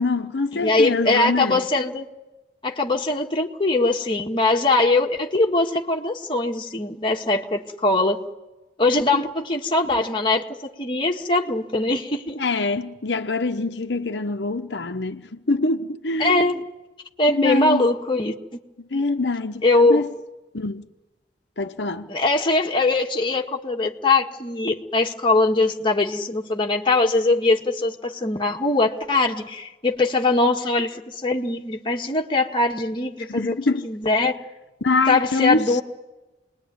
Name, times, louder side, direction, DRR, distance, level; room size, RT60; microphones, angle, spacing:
voice 1, 0.0-1.6 12.4-16.5 17.3-17.9 18.8-20.1 20.5-20.9 21.6-22.1 33.3-33.9 34.8-35.8, left 3 dB, 80° left, 1.0 m, -24 dB
voice 2, 0.5-2.0 2.6-8.2 8.8-10.5 10.8-12.4 16.2-16.5 17.2-18.3 19.6-20.0 22.1-33.6 33.8-34.3 35.1-35.8, left 2 dB, 30° left, 1.8 m, -21 dB
28.0 x 20.5 x 9.5 m
head